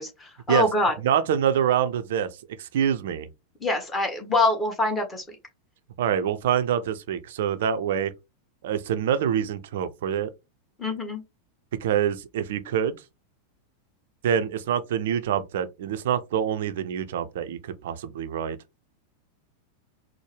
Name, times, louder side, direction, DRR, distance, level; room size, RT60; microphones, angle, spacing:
voice 1, 0.0-0.9 3.6-5.3 10.8-11.2, left 2 dB, 15° left, 1.4 m, -25 dB
voice 2, 1.0-2.3 2.6-3.3 6.0-8.1 8.6-10.3 11.8-13.0 14.2-17.6 17.8-18.6, right 9 dB, 55° right, 0.5 m, -25 dB
4.4 x 2.1 x 3.3 m
figure-of-eight pair, 90°, 0 cm